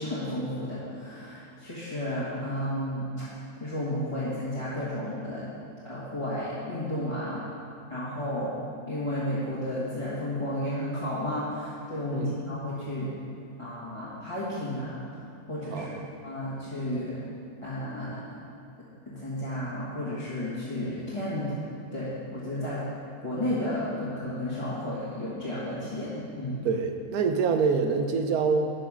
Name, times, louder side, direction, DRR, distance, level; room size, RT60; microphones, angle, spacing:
voice 1, 0.0-3.1 3.6-5.5 5.8-7.4 7.9-8.5 8.9-13.1 13.6-15.2 15.5-15.9 16.2-17.1 17.6-18.2 19.1-21.5 21.9-22.9 23.2-26.1 26.4-26.6, left 1 dB, 20° left, -10 dB, 1.5 m, -32 dB
voice 2, 15.7-16.1 26.6-28.7, right 5 dB, 85° right, 5 dB, 1.2 m, -26 dB
11.5 x 4.9 x 6.2 m, 2.5 s
omnidirectional pair, 1.6 m